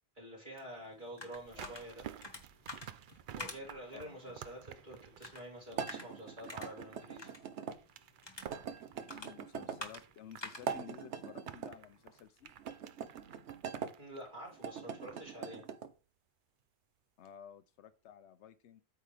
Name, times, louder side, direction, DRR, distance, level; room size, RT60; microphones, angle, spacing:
voice 1, 0.1-2.0 3.3-7.3 14.0-15.6, equal, 45° right, 3.4 m, -48 dB
sound 1, 0.6-12.2, left 2 dB, 25° left, 1.3 m, -51 dB
sound 2, 1.3-15.4 15.6-15.7, right 9 dB, 60° right, 0.6 m, -52 dB
voice 2, 3.9-4.4 9.1-12.5 17.2-18.8, left 10 dB, 90° left, 0.9 m, -53 dB
sound 3, 5.7-7.8 8.5-9.8 10.5-11.7 12.6-13.9 14.5-15.9, right 7 dB, 85° right, 1.1 m, -42 dB
9.0 x 6.0 x 3.4 m
omnidirectional pair, 1.1 m